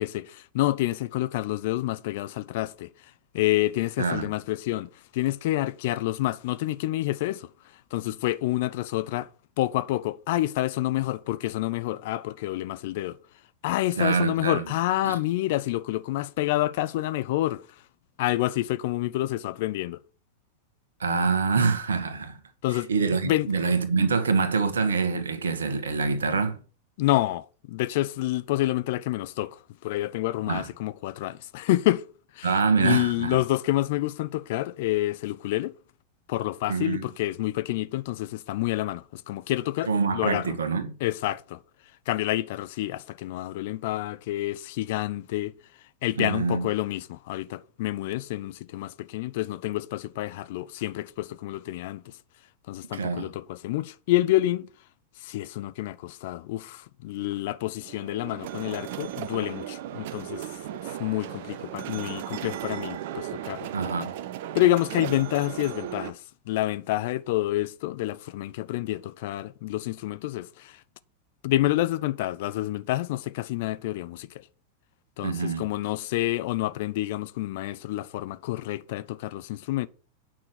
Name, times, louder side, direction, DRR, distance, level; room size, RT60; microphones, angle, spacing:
voice 1, 0.0-2.9 3.3-7.5 7.9-9.3 9.6-13.2 13.6-17.6 18.2-20.0 22.6-22.9 23.2-23.5 27.0-32.0 32.3-32.5 32.8-35.7 36.3-40.5 41.0-41.6 42.1-45.5 46.0-52.1 52.7-54.7 55.2-60.4 61.0-63.7 64.5-70.8 71.4-74.3 75.2-79.9, left 16 dB, 50° left, 0.6 m, -28 dB
voice 2, 4.0-4.3 13.9-14.6 15.0-15.2 21.0-22.4 22.7-26.6 30.5-30.7 32.4-33.4 36.7-37.1 39.8-40.9 46.2-46.7 52.9-53.3 63.7-64.1 75.2-75.6, right 4 dB, 70° right, 1.7 m, -25 dB
sound 1, 57.8-66.1, right 12 dB, 50° right, 0.8 m, -36 dB
9.3 x 6.1 x 6.2 m
figure-of-eight pair, 90°, 0 cm